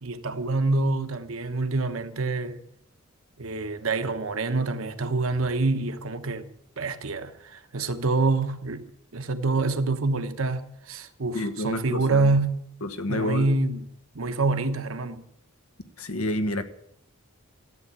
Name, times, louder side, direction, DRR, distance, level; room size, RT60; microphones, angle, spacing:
voice 1, 0.0-2.6 3.4-6.5 6.8-12.6 13.1-13.9 14.1-15.2, right 3 dB, 65° right, 1.1 m, -26 dB
voice 2, 11.3-12.3 12.8-13.5 16.0-16.6, left 1 dB, 80° left, 1.4 m, -29 dB
13.5 x 8.5 x 9.7 m
head